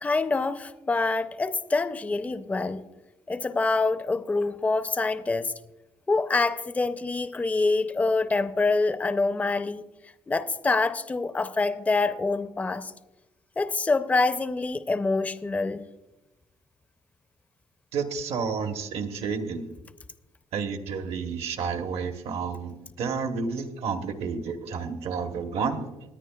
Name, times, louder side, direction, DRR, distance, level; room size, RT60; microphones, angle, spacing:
voice 1, 0.0-2.8 3.3-5.5 6.1-9.8 10.3-12.9 13.6-15.8, left 3 dB, 15° left, 12 dB, 0.4 m, -26 dB
voice 2, 17.9-19.6 20.5-25.9, right 5 dB, 70° right, 7 dB, 1.0 m, -30 dB
20.5 x 9.7 x 2.3 m, 1.0 s
cardioid pair, 120°, 11 cm